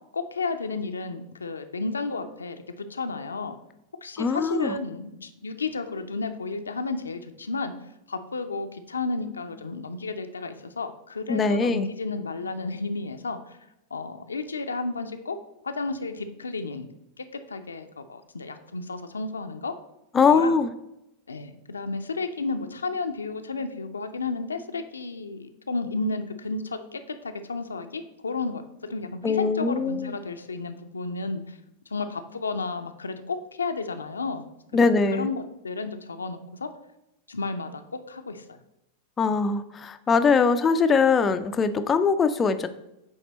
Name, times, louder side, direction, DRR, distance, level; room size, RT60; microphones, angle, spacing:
voice 1, 0.1-3.5 4.0-7.7 8.1-13.6 13.9-15.4 15.6-16.9 17.2-19.7 20.3-20.6 21.3-28.6 28.9-31.6 31.9-36.7 37.3-38.6, left 3 dB, 75° left, 7 dB, 0.5 m, -32 dB
voice 2, 4.2-4.8 11.3-11.9 20.1-20.7 29.2-30.2 34.7-35.3 39.2-42.7, left 5 dB, 20° left, 8 dB, 0.4 m, -22 dB
8.4 x 3.3 x 4.1 m, 0.88 s
figure-of-eight pair, 90°, 0 cm